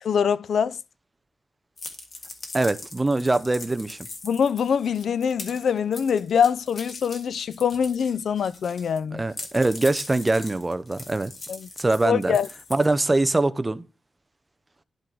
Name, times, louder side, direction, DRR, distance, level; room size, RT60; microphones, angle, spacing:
voice 1, 0.0-0.8 4.2-9.2 11.5-11.7 12.1-12.5, left 7 dB, 75° left, 0.4 m, -24 dB
sound 1, 1.8-9.0 9.3-13.3, left 3 dB, 40° left, 1.6 m, -41 dB
voice 2, 2.5-4.0 9.1-11.3 11.8-12.4 12.7-13.9, right 2 dB, 15° right, 0.5 m, -23 dB
11.5 x 3.9 x 4.5 m
wide cardioid pair, 140°, 0 cm